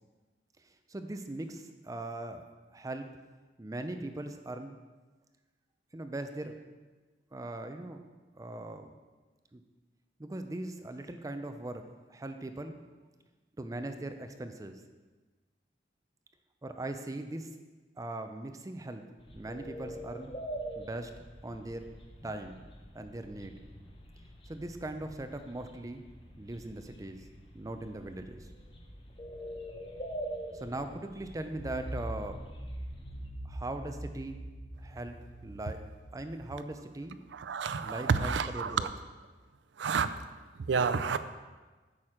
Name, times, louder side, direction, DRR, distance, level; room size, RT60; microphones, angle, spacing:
voice 1, 0.9-2.4 2.7-3.1 3.6-4.8 5.9-6.6 7.3-8.0 8.3-8.9 9.5-9.6 10.2-11.8 12.1-12.8 13.6-14.8 16.6-17.5 18.0-19.0 19.3-20.3 20.8-21.1 21.4-21.9 22.2-22.6 22.9-23.6 24.5-26.0 26.4-27.2 27.5-28.5 30.5-32.5 33.4-34.4 34.8-35.2 35.4-35.8 36.1-37.2 37.8-38.9, right 2 dB, 20° right, 7 dB, 0.4 m, -40 dB
sound 1, 19.2-33.3, right 1 dB, 30° left, 0.9 m, -45 dB
sound 2, 31.6-37.3, right 1 dB, 85° left, 2.4 m, -43 dB
voice 2, 37.3-38.9 39.8-40.1 40.7-41.2, right 5 dB, 80° right, 12 dB, 0.5 m, -29 dB
8.7 x 6.0 x 4.9 m, 1.3 s
head